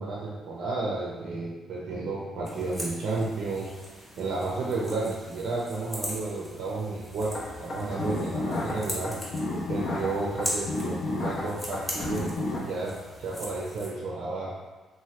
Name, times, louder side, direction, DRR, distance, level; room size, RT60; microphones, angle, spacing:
voice 1, 0.0-3.7 4.0-9.1 9.7-12.9 13.2-14.6, right 3 dB, 75° right, -4 dB, 0.5 m, -32 dB
sound 1, 2.4-13.9, equal, ahead, 0.9 m, -40 dB
sound 2, 7.3-12.6, left 2 dB, 60° left, 0.6 m, -32 dB
2.8 x 2.1 x 3.1 m, 1.2 s
cardioid pair, 90°, 0 cm